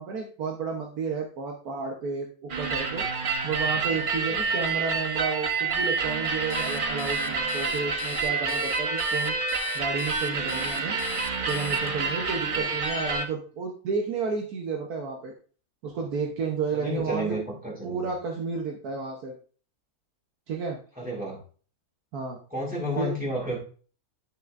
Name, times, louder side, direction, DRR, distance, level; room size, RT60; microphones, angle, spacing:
voice 1, 0.0-3.0 3.4-9.3 9.7-11.0 11.5-15.3 15.8-17.4 17.8-19.3 20.5-20.8 22.1-22.4 23.0-23.1, right 5 dB, 75° right, 1 dB, 1.5 m, -32 dB
sound 1, 2.5-13.2, right 4 dB, 40° right, 0.9 m, -28 dB
voice 2, 3.7-4.6 12.5-12.7 16.7-18.1 21.0-21.4 22.5-23.6, equal, 5° right, -4 dB, 2.8 m, -32 dB
Alarm, 6.5-12.1, left 9 dB, 65° left, 1.2 m, -40 dB
10.5 x 6.0 x 2.5 m, 0.40 s
omnidirectional pair, 1.6 m